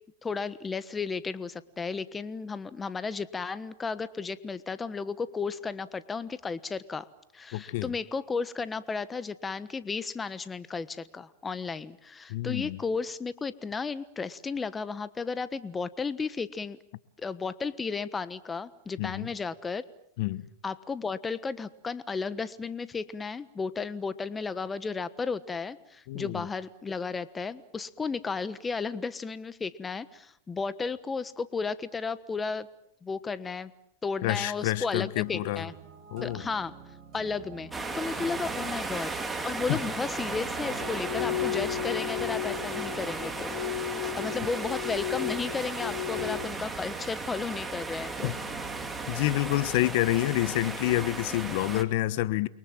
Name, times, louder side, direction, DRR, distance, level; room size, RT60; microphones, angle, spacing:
voice 1, 0.2-7.1 7.3-16.8 17.2-19.8 20.6-32.7 33.0-33.7 34.0-35.7 36.2-36.7 37.1-39.1 39.4-43.6 44.2-48.4, left 4 dB, 15° left, 15 dB, 1.3 m, -34 dB
voice 2, 7.5-7.9 12.3-12.8 19.0-19.3 20.2-20.4 26.1-26.4 34.2-35.6 36.1-36.4 39.7-39.8 48.2-48.3 49.1-52.5, left 16 dB, 55° left, 17 dB, 1.2 m, -28 dB
sound 1, 35.2-49.1, right 6 dB, 30° right, 8.0 m, -47 dB
sound 2, 37.7-51.8, right 3 dB, 10° right, 2.7 m, -35 dB
sound 3, 40.7-46.5, left 13 dB, 80° left, 1.4 m, -34 dB
29.5 x 23.5 x 7.6 m, 0.69 s
hypercardioid pair, 135°, 0 cm